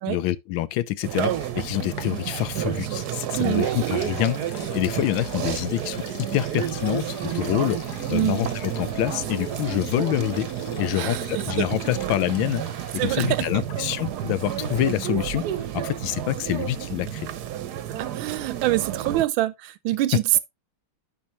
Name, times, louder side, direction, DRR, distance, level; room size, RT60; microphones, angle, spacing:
voice 1, 0.0-6.0 6.3-10.5 10.8-12.6 12.9-15.4 15.7-17.3, left 14 dB, 75° left, 1.3 m, -26 dB
sound 1, 1.0-19.3, right 11 dB, 65° right, 1.1 m, -30 dB
sound 2, 1.5-3.0 3.4-15.1, left 8 dB, 60° left, 1.3 m, -43 dB
voice 2, 3.3-3.6 8.1-8.4 10.9-11.7 13.0-13.6 18.0-20.4, right 15 dB, 80° right, 1.4 m, -25 dB
11.0 x 4.5 x 3.0 m
omnidirectional pair, 2.2 m